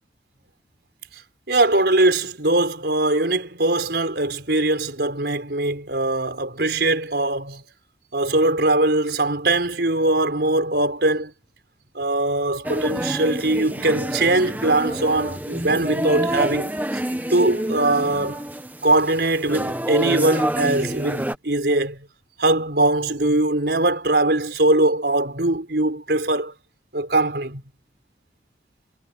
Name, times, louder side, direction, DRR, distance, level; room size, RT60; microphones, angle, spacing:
voice 1, 1.5-7.6 8.1-11.3 11.9-17.0 17.3-18.4 18.8-22.0 22.4-26.5 26.9-27.6, right 2 dB, 70° right, 4.3 m, -21 dB
sound 1, 12.6-21.4, right 1 dB, 10° right, 1.5 m, -28 dB
head